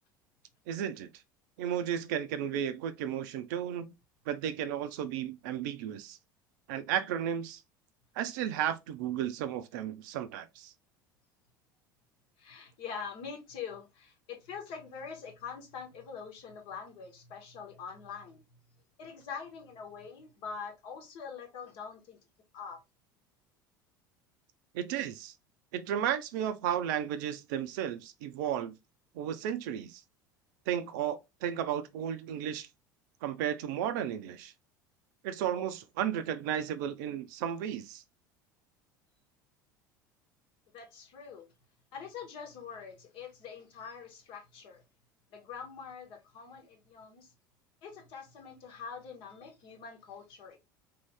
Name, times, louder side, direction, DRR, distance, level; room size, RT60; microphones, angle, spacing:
voice 1, 0.7-1.1 1.6-3.9 4.3-6.2 6.7-7.6 8.2-10.7 24.7-25.3 25.7-28.7 29.1-30.0 30.7-32.7 33.2-34.5 35.2-38.0, right 9 dB, 65° right, 0.5 m, -33 dB
voice 2, 12.4-18.4 19.0-22.2 22.5-22.8 40.7-41.5 41.9-44.8 45.3-47.3 47.8-50.6, left 6 dB, 55° left, 1.1 m, -44 dB
3.0 x 2.7 x 3.4 m
hypercardioid pair, 70°, 11 cm